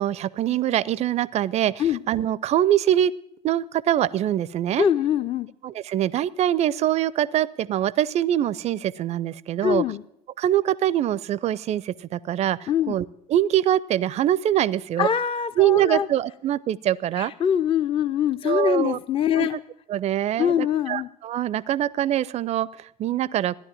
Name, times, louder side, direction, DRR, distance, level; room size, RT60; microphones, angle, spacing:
voice 1, 0.0-3.1 3.4-4.9 5.6-9.8 10.4-15.1 15.6-17.3 18.4-19.0 19.4-19.5 19.9-20.6 20.9-23.6, right 12 dB, 35° right, 23 dB, 0.5 m, -23 dB
voice 2, 4.8-5.5 9.6-10.0 12.7-12.9 15.0-16.1 17.2-19.6 20.4-21.1, left 9 dB, 25° left, 12 dB, 0.6 m, -23 dB
14.5 x 10.5 x 7.3 m, 0.76 s
figure-of-eight pair, 65°, 20 cm